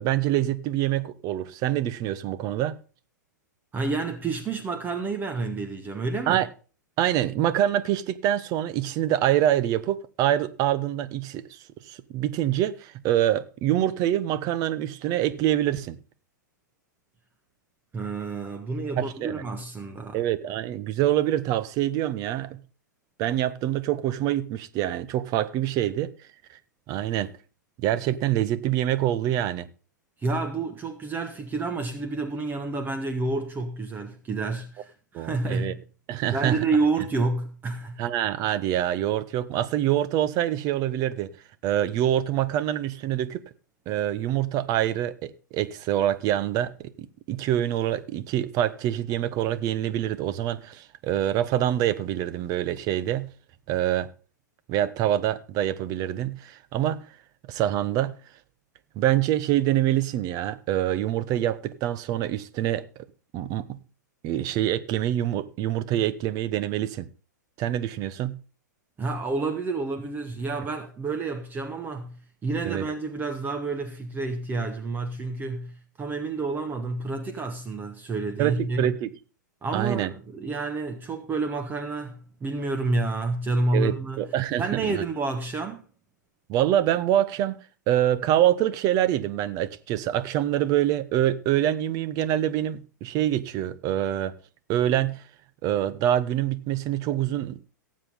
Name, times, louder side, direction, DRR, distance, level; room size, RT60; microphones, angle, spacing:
voice 1, 0.0-2.8 6.3-6.5 7.0-11.6 11.9-16.0 19.0-19.4 20.1-22.6 23.2-26.1 26.9-27.3 27.8-29.7 35.1-35.7 36.1-36.6 38.0-41.3 41.6-43.4 43.9-53.3 53.7-54.1 54.7-57.1 57.5-58.2 59.0-62.9 63.3-63.8 64.2-67.1 67.6-68.4 72.6-72.8 78.4-79.1 79.7-80.1 83.7-85.0 86.5-87.6 87.9-94.3 94.7-95.2 95.6-97.6, right 12 dB, 35° right, 1.1 m, -25 dB
voice 2, 3.7-6.4 17.9-20.2 30.2-35.8 36.3-38.0 69.0-78.9 79.6-85.8, right 3 dB, 20° right, 1.3 m, -29 dB
18.0 x 7.7 x 3.6 m
hypercardioid pair, 110°, 10 cm